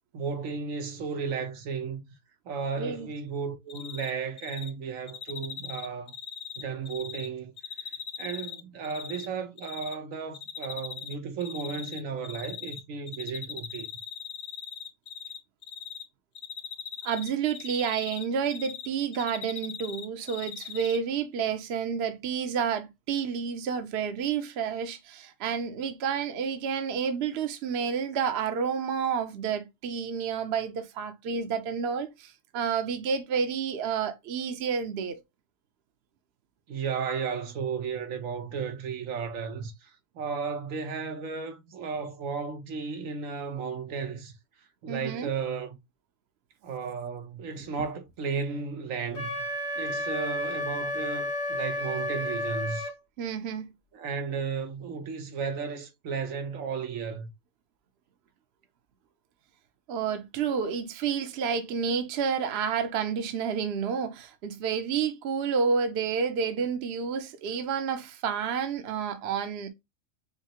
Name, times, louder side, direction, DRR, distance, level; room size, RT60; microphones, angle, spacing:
voice 1, 0.1-2.0 2.5-6.1 6.6-7.5 8.2-13.9 36.7-44.3 44.8-45.8 46.6-49.3 49.8-52.9 53.9-57.3, right 5 dB, 80° right, 1.3 m, -34 dB
voice 2, 2.8-3.1 17.0-35.2 44.9-45.3 53.2-53.7 59.9-69.7, right 6 dB, 60° right, 0.9 m, -30 dB
Cricket, 3.7-4.1 4.4-4.7 5.1-7.3 7.6-9.3 9.6-9.9 10.3-11.1 11.4-12.8 13.1-15.4 15.6-16.0 16.4-18.9 19.1-21.0, left 8 dB, 50° left, 0.6 m, -39 dB
Wind instrument woodwind instrument, 49.1-52.9, left 1 dB, 75° left, 1.5 m, -32 dB
5.5 x 2.0 x 2.8 m
omnidirectional pair, 1.4 m